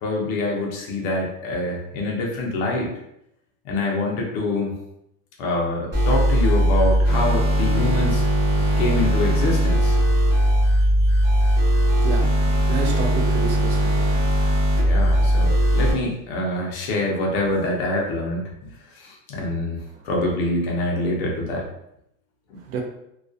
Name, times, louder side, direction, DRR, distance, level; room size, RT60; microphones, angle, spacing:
voice 1, 0.0-2.9 3.6-4.8 5.4-8.3 8.8-10.0 14.8-18.7 19.0-19.8 20.0-21.7 22.5-22.6, left 2 dB, 45° left, -1 dB, 0.5 m, -25 dB
sound 1, 5.9-15.9, equal, 20° right, 1.0 m, -19 dB
voice 2, 11.8-12.4 12.7-14.1 22.7-22.8, right 4 dB, 65° right, 2 dB, 0.6 m, -30 dB
2.2 x 2.2 x 2.5 m, 0.79 s
supercardioid pair, 165°, 46 cm